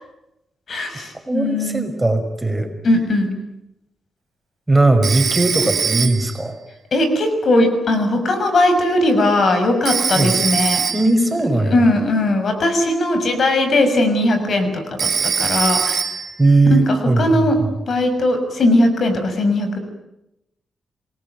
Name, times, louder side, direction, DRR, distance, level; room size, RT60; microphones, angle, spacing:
voice 1, 0.7-1.8 2.8-3.3 6.9-10.8 11.7-16.1 16.7-17.6 17.9-19.8, left 1 dB, 60° left, 7 dB, 6.3 m, -18 dB
voice 2, 1.3-2.7 4.7-6.5 10.2-10.4 10.9-11.8 16.4-17.7, right 2 dB, 15° right, 6 dB, 5.6 m, -18 dB
Telephone, 5.0-6.5 9.9-11.3 15.0-16.4, right 7 dB, 65° right, 2.5 m, -22 dB
28.0 x 20.0 x 9.4 m, 0.87 s
cardioid pair, 80°, 0 cm